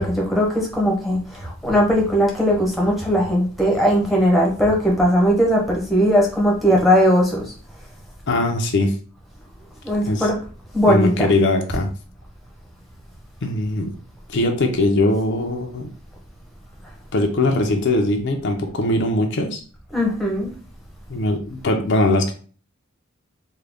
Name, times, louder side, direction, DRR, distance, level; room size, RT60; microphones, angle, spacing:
voice 1, 0.0-7.4 9.8-10.4 10.7-11.3 19.9-20.5, equal, ahead, -2 dB, 0.8 m, -18 dB
voice 2, 8.3-8.9 10.0-10.3 10.9-11.9 13.4-13.9 14.3-15.9 17.1-19.6 21.1-22.3, left 2 dB, 55° left, 3 dB, 0.6 m, -20 dB
3.7 x 2.2 x 3.4 m, 0.40 s
head